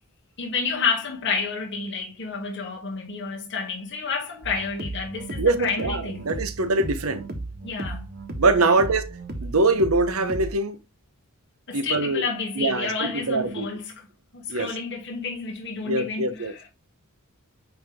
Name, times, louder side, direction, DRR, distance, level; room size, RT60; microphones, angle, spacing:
voice 1, 0.4-6.2 7.6-8.1 11.7-14.1 14.3-16.7, left 4 dB, 55° left, 2.4 m, -30 dB
sound 1, 4.4-10.5, right 2 dB, 45° right, 1.6 m, -35 dB
voice 2, 5.3-7.2 8.4-9.1 9.4-10.8 11.7-12.3 12.6-13.7 14.5-14.7 15.8-16.5, right 2 dB, 75° right, 1.0 m, -23 dB
9.3 x 3.7 x 3.6 m
head